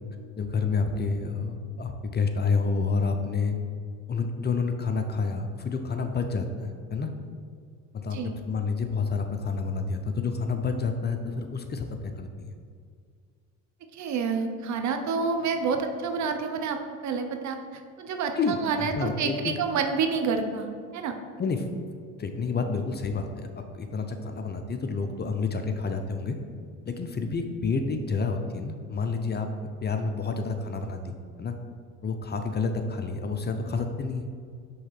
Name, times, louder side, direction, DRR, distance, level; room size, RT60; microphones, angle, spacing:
voice 1, 0.4-3.6 4.1-7.1 7.9-12.5 18.4-19.6 21.4-21.7 22.2-26.4 26.8-29.5 29.8-31.5 32.0-34.3, left 4 dB, 25° left, 6 dB, 0.6 m, -29 dB
voice 2, 13.9-17.6 18.0-18.9 19.2-20.7 20.9-21.1, right 5 dB, 50° right, 6 dB, 0.8 m, -28 dB
5.5 x 3.7 x 5.7 m, 2.1 s
supercardioid pair, 80°, 37 cm